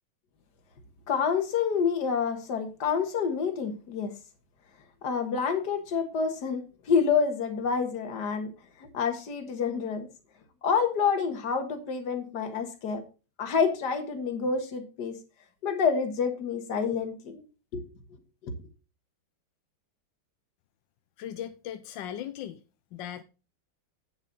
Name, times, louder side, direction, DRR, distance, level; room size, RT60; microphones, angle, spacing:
voice 1, 1.1-4.1 5.0-8.5 8.8-10.1 10.6-13.0 13.4-15.2 15.6-17.4 17.7-17.8 18.4-18.5, left 6 dB, 60° left, 2.0 m, -28 dB
voice 2, 21.2-22.6 22.9-23.2, left 10 dB, 75° left, 1.3 m, -38 dB
8.8 x 7.3 x 4.0 m
omnidirectional pair, 2.1 m